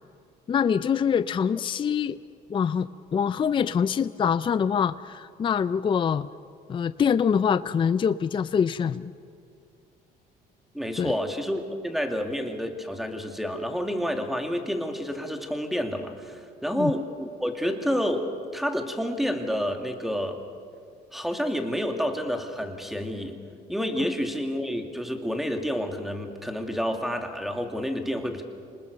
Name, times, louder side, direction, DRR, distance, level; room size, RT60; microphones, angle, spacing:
voice 1, 0.5-2.2 2.5-6.3 6.7-9.1 11.0-11.1 16.8-16.9, left 7 dB, 30° left, 14 dB, 0.5 m, -24 dB
voice 2, 10.7-20.4 21.1-23.4 23.7-28.4, equal, ahead, 5 dB, 2.3 m, -29 dB
26.5 x 20.0 x 6.9 m, 2.4 s
cardioid pair, 110°, 17 cm